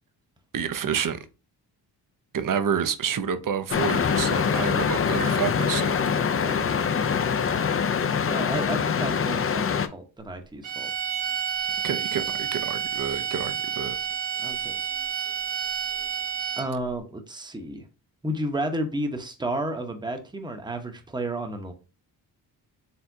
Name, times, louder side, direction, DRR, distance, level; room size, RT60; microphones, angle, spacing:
voice 1, 0.5-1.3 2.3-6.0 11.8-14.0, right 7 dB, 45° right, 0.7 m, -29 dB
sound 1, 3.7-9.9, left 6 dB, 30° left, 0.5 m, -24 dB
voice 2, 8.3-10.9 12.2-12.3 14.4-14.7 16.6-17.8 18.2-21.7, right 1 dB, 10° right, 0.9 m, -32 dB
sound 2, 10.6-16.9, right 8 dB, 65° right, 1.1 m, -30 dB
4.6 x 3.5 x 2.6 m
supercardioid pair, 50°, 47 cm